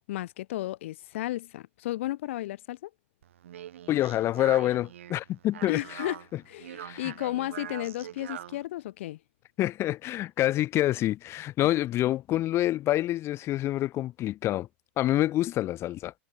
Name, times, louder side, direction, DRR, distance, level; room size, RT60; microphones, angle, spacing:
voice 1, 0.1-2.9 5.7-6.2 6.5-9.2, left 15 dB, 75° left, 1.4 m, -33 dB
Speech, 3.2-8.7, right 11 dB, 85° right, 6.5 m, -43 dB
voice 2, 3.9-6.0 6.8-7.1 9.6-14.7 15.0-16.1, left 14 dB, 40° left, 1.2 m, -27 dB
hypercardioid pair, 115°, 7 cm